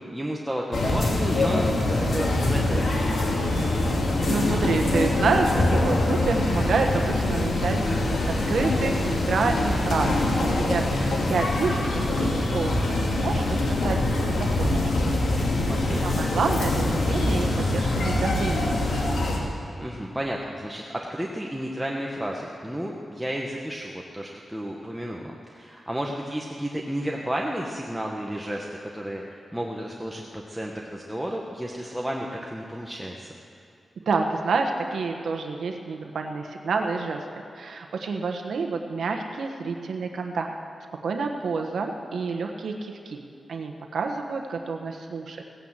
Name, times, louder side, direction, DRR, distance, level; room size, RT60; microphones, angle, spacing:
voice 1, 0.0-3.0 15.7-16.1 19.8-28.7 28.9-33.3, equal, 5° right, -2 dB, 1.1 m, -32 dB
sound 1, 0.7-19.4, left 2 dB, 80° left, 2.6 m, -24 dB
voice 2, 4.3-7.8 8.3-14.9 16.0-18.8 34.0-37.2 37.5-40.5 41.0-43.2 43.5-45.4, right 4 dB, 85° right, 3 dB, 1.2 m, -28 dB
17.0 x 9.4 x 7.4 m, 2.6 s
wide cardioid pair, 125°, 0 cm